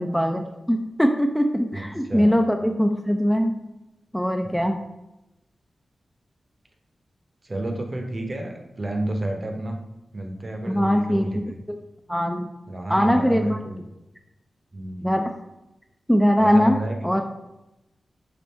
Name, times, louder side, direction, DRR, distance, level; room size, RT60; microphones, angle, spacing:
voice 1, 0.0-3.6 4.1-4.8 10.7-11.8 12.1-12.5 12.9-13.6 15.0-15.3 16.1-17.2, equal, 5° left, 4 dB, 0.3 m, -21 dB
voice 2, 7.4-9.8 10.1-11.5 12.7-13.8 14.7-15.1 16.4-17.3, right 1 dB, 40° right, 3 dB, 0.7 m, -31 dB
3.4 x 2.5 x 4.2 m, 0.95 s
cardioid pair, 50°, 0 cm